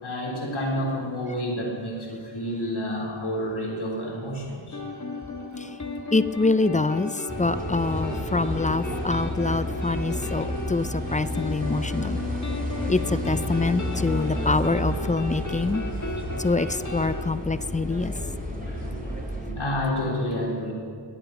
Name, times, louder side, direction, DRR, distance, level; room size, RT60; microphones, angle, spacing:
voice 1, 0.0-4.8 18.6-18.8 19.5-20.7, equal, 70° left, -3 dB, 4.0 m, -29 dB
sound 1, 4.7-17.2, left 2 dB, 35° left, 1.5 m, -35 dB
voice 2, 6.1-12.2 12.9-15.8 16.4-18.1, left 3 dB, 15° left, 14 dB, 0.3 m, -25 dB
sound 2, 7.3-19.5, left 1 dB, 15° right, 3.2 m, -31 dB
20.5 x 9.2 x 6.0 m, 2.3 s
wide cardioid pair, 50°, 50 cm